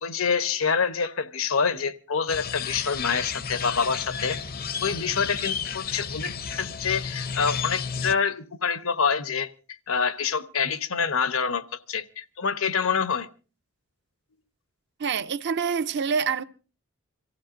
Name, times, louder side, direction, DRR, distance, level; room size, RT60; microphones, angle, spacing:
voice 1, 0.0-4.4 4.8-9.5 9.9-13.3, left 6 dB, 80° left, 1.0 m, -26 dB
sound 1, 2.3-8.1, left 6 dB, 45° left, 0.6 m, -32 dB
voice 2, 15.0-16.4, right 6 dB, 55° right, 0.6 m, -26 dB
26.5 x 15.0 x 2.6 m
head